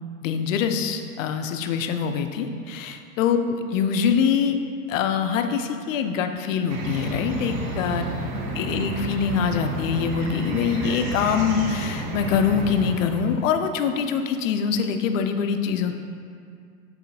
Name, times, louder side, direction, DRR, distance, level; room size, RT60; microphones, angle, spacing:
voice 1, 0.2-4.6 4.9-8.0 8.6-15.9, left 7 dB, 60° left, 7 dB, 0.5 m, -24 dB
sound 1, 6.7-13.4, right 1 dB, 45° right, 0.8 m, -30 dB
7.3 x 2.7 x 2.7 m, 2.3 s
figure-of-eight pair, 90°, 45 cm